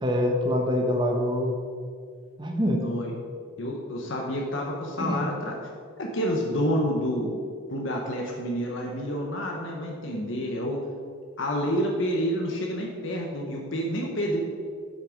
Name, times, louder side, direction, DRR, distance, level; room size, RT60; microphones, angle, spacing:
voice 1, 0.0-1.5 2.4-2.8 5.0-5.3, left 1 dB, 20° right, 2 dB, 1.0 m, -25 dB
voice 2, 2.6-3.1 3.6-5.5 6.0-7.4 7.7-10.8 11.4-14.4, equal, 60° left, 0 dB, 1.0 m, -28 dB
8.4 x 6.4 x 5.1 m, 2.2 s
head